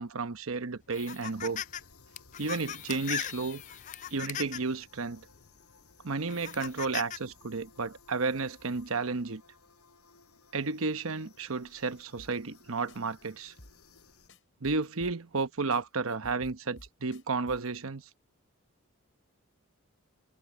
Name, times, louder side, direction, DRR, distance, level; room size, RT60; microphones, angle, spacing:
voice 1, 0.0-1.6 2.4-3.6 4.1-5.2 6.0-9.4 10.5-13.5 14.6-18.1, right 4 dB, 70° right, 0.9 m, -32 dB
sound 1, 0.9-1.8 2.2-4.7 5.4-5.5 6.3-7.2, left 10 dB, 35° left, 0.3 m, -38 dB
sound 2, 1.3-14.3, left 4 dB, 90° left, 6.8 m, -59 dB
sound 3, 12.2-12.6 12.9-13.0 13.2-13.3 13.6-14.0 14.3-15.4 15.7-17.8, left 1 dB, 60° left, 6.9 m, -53 dB
head